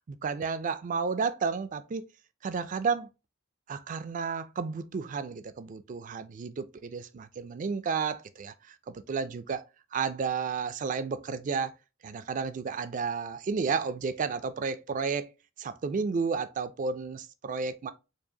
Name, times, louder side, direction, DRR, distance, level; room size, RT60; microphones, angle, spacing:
voice 1, 0.1-2.0 2.4-3.1 3.7-9.6 9.9-11.7 12.0-15.3 15.6-17.9, right 5 dB, 40° right, 0.3 m, -32 dB
4.6 x 2.5 x 2.7 m
head